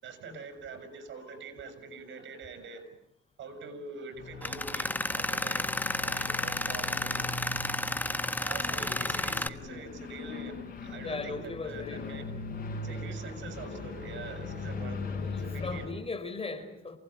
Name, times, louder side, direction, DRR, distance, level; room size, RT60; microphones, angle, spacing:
voice 1, 0.0-2.9 3.4-5.7 6.0-7.3 8.4-12.3 12.8-15.1 15.4-15.8, right 4 dB, 70° right, 10 dB, 6.7 m, -44 dB
sound 1, 4.2-15.9, left 4 dB, 45° left, 7.9 m, -40 dB
Tools, 4.4-9.5, left 1 dB, 10° left, 1.3 m, -32 dB
voice 2, 11.0-12.2 15.2-17.0, left 3 dB, 30° left, 9 dB, 4.6 m, -38 dB
28.5 x 19.0 x 9.8 m, 0.77 s
cardioid pair, 90°, 20 cm